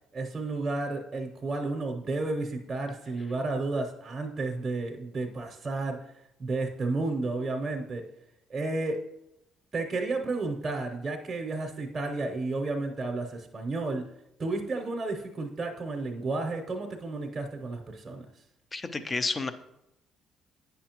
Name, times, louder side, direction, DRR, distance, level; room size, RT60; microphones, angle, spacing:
voice 1, 0.1-6.0 6.4-8.1 8.5-9.0 9.7-14.0 14.4-18.3, right 3 dB, 35° right, 3 dB, 0.8 m, -32 dB
voice 2, 18.7-19.5, left 3 dB, 30° left, 11 dB, 0.5 m, -30 dB
8.4 x 5.7 x 2.9 m, 0.84 s
supercardioid pair, 75°, 0 cm